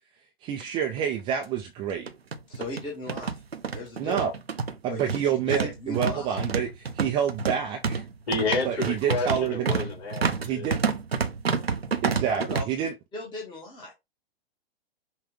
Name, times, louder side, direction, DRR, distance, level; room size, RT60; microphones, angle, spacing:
voice 1, 0.4-2.1 4.0-4.3 4.8-8.0 8.6-9.7 10.4-10.8 12.0-12.9, right 8 dB, 15° right, 0.4 m, -28 dB
sound 1, 0.6-0.7 1.0-1.1 1.9-12.6, right 5 dB, 80° right, 0.7 m, -29 dB
voice 2, 2.5-3.4 3.7-4.2 4.9-5.2 5.5-6.4 12.3-13.9, left 1 dB, 15° left, 1.1 m, -37 dB
voice 3, 8.3-10.7, left 3 dB, 40° left, 3.3 m, -30 dB
5.8 x 2.3 x 3.5 m
figure-of-eight pair, 105°, 30 cm